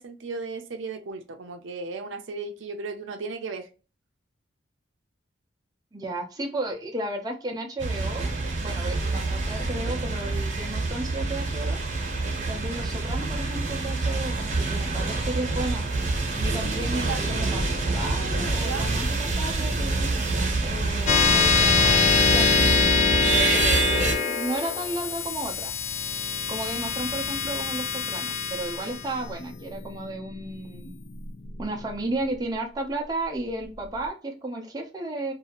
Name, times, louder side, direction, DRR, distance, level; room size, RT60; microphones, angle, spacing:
voice 1, 0.0-3.7 16.6-17.6 18.6-18.9, right 4 dB, 75° right, 0.5 m, -36 dB
voice 2, 5.9-8.3 8.6-11.8 12.4-15.8 16.4-20.1 20.6-22.8 23.3-25.7 26.5-30.9 31.6-35.3, right 2 dB, 20° right, 0.6 m, -33 dB
sound 1, 7.8-24.2, right 3 dB, 40° right, 0.9 m, -27 dB
sound 2, 21.1-31.9, left 5 dB, 35° left, 0.3 m, -24 dB
2.7 x 2.4 x 2.8 m
head